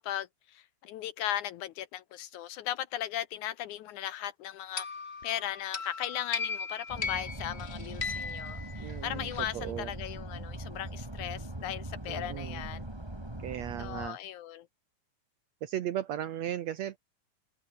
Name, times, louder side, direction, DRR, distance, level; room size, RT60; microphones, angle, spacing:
voice 1, 0.0-4.9 5.2-12.8 13.8-14.7, left 12 dB, 75° left, 2.0 m, -37 dB
sound 1, 4.8-9.5, left 5 dB, 45° left, 0.8 m, -38 dB
sound 2, 6.9-14.1, right 1 dB, 10° right, 2.7 m, -41 dB
voice 2, 8.8-9.9 12.1-12.7 13.4-14.2 15.6-17.0, right 11 dB, 70° right, 1.7 m, -36 dB
omnidirectional pair, 4.0 m